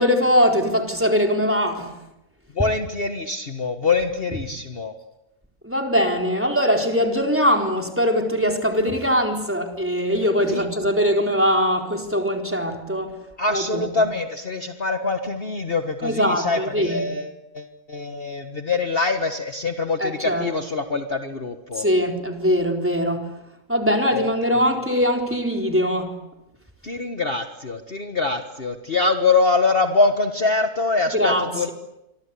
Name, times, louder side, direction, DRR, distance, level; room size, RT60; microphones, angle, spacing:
voice 1, 0.0-1.9 5.6-13.1 13.5-13.9 16.0-17.1 20.0-20.5 21.7-23.3 23.7-26.1 31.1-31.7, equal, 10° right, 3 dB, 4.1 m, -21 dB
voice 2, 2.5-4.9 10.5-10.6 13.4-21.9 24.1-24.3 26.8-31.7, left 3 dB, 40° left, 6 dB, 1.7 m, -24 dB
28.5 x 24.5 x 8.5 m, 0.90 s
omnidirectional pair, 1.6 m